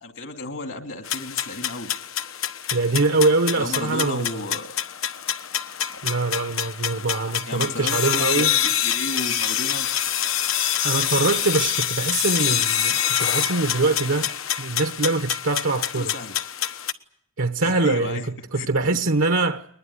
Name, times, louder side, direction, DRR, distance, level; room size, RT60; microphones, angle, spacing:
voice 1, 0.0-1.9 3.6-4.7 7.5-9.9 15.9-16.3 17.6-18.3 18.5-19.0, left 2 dB, 65° left, 2.7 m, -33 dB
sound 1, 1.1-16.9, left 10 dB, 85° left, 1.2 m, -26 dB
voice 2, 2.7-4.5 6.0-8.5 10.8-14.3 14.6-16.1 17.4-19.7, right 3 dB, 75° right, 1.0 m, -23 dB
21.0 x 21.0 x 9.9 m
head